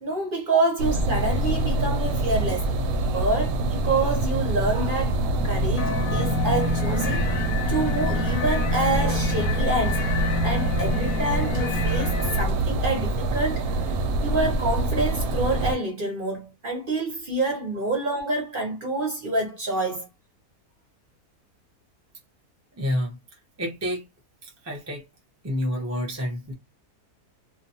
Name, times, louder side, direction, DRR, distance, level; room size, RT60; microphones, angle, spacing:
voice 1, 0.0-2.7 3.1-5.2 5.4-7.3 7.7-10.0 10.4-13.9 14.2-20.1, right 2 dB, 45° right, 0.7 m, -27 dB
sound 1, 0.8-15.7, right 2 dB, 75° right, 1.0 m, -25 dB
sound 2, 5.8-12.4, left 6 dB, 65° left, 0.9 m, -30 dB
voice 2, 22.8-23.2 23.6-24.0 24.4-25.0 25.4-26.5, equal, 25° right, 0.3 m, -29 dB
2.5 x 2.2 x 2.6 m
omnidirectional pair, 1.7 m